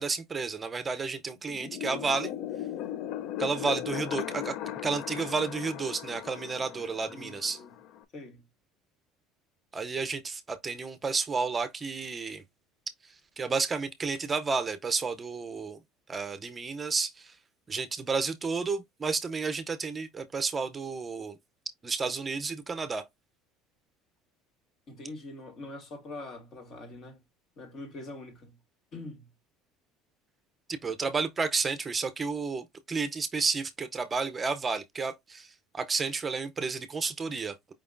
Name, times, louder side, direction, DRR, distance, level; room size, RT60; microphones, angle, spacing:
voice 1, 0.0-2.3 3.4-4.6 4.8-7.6 9.7-12.4 13.0-15.8 16.1-17.3 17.7-21.4 21.8-23.1 30.7-37.7, right 4 dB, 25° right, 0.6 m, -31 dB
sound 1, 1.5-8.0, left 11 dB, 65° left, 0.5 m, -37 dB
voice 2, 7.1-7.7 8.1-8.5 24.9-27.2 27.6-28.6 28.9-29.3, left 2 dB, 45° left, 2.2 m, -43 dB
5.1 x 3.4 x 2.5 m
supercardioid pair, 110°, 0 cm